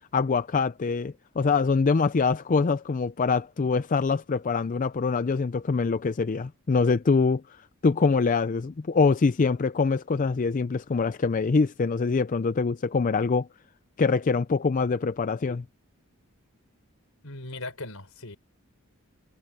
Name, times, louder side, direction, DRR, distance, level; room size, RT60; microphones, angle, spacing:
voice 1, 0.1-13.5 14.0-15.6, left 4 dB, 35° left, 0.4 m, -24 dB
voice 2, 17.2-18.4, left 2 dB, 70° left, 4.2 m, -38 dB
head